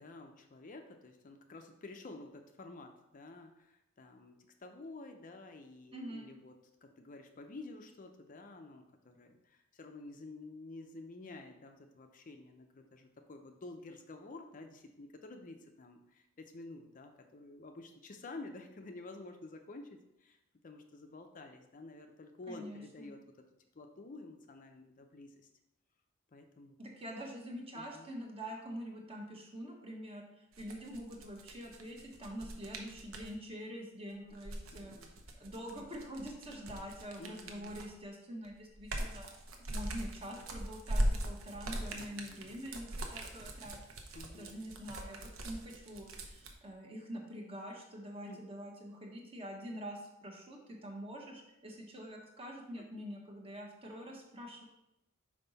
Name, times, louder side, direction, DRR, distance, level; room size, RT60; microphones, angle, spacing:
voice 1, 0.0-6.5 6.8-20.4 20.6-23.2 23.7-25.5 26.3-26.8 27.7-28.1 34.0-34.4 34.7-35.1 37.2-37.7 41.9-42.5 44.1-44.6 48.3-48.4, left 2 dB, 40° left, 5 dB, 0.5 m, -50 dB
voice 2, 5.9-6.3 22.5-23.1 26.8-34.9 35.4-39.3 39.7-43.8 44.3-54.6, equal, 30° right, 0 dB, 1.2 m, -45 dB
sound 1, 30.5-33.3 34.2-38.0 38.4-46.5, right 1 dB, 70° right, 0.8 m, -40 dB
5.5 x 5.0 x 4.0 m, 0.88 s
head